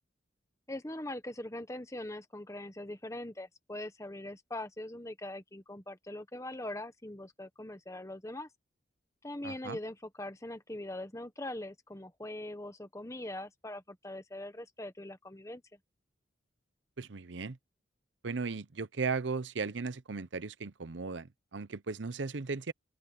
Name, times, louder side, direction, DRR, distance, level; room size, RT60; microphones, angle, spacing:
voice 1, 0.7-8.5 9.2-15.6, left 1 dB, 15° left, 1.2 m, -42 dB
voice 2, 9.4-9.8 17.0-17.6 18.2-22.7, right 4 dB, 80° right, 0.8 m, -36 dB
open air
head